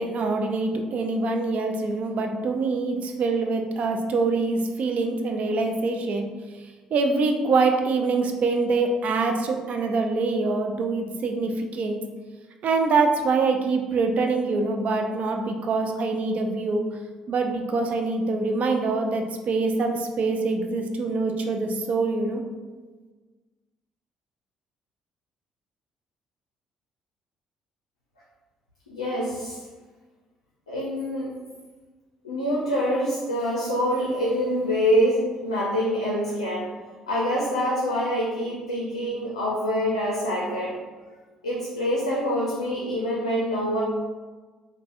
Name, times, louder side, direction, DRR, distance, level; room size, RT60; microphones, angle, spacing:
voice 1, 0.0-6.3 6.9-12.0 12.6-16.8 17.3-22.4, right 3 dB, 50° right, 4 dB, 0.4 m, -24 dB
voice 2, 28.9-29.6 30.7-31.3 32.2-36.7 37.1-40.8 41.4-43.8, equal, 90° left, -5 dB, 0.4 m, -25 dB
3.2 x 2.1 x 2.5 m, 1.3 s
hypercardioid pair, 50°, 3 cm